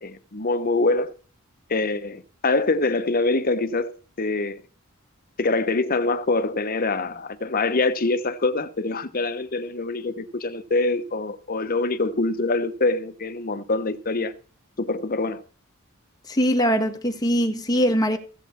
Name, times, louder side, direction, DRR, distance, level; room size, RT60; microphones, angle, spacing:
voice 1, 0.0-1.1 1.7-4.6 5.4-14.3 14.8-15.4, left 3 dB, 40° left, 1.0 m, -24 dB
voice 2, 16.3-18.2, equal, 15° left, 1.5 m, -21 dB
16.0 x 8.2 x 4.4 m
head